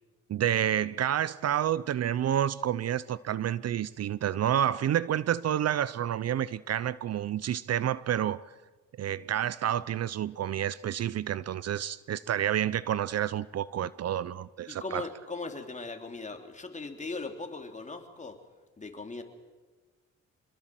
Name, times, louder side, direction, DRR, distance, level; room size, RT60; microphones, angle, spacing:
voice 1, 0.3-8.4 9.0-15.1, right 10 dB, 55° right, 0.7 m, -29 dB
voice 2, 14.7-18.4 18.8-19.2, left 3 dB, 25° left, 3.4 m, -39 dB
26.0 x 21.5 x 7.7 m
cardioid pair, 90°, 30 cm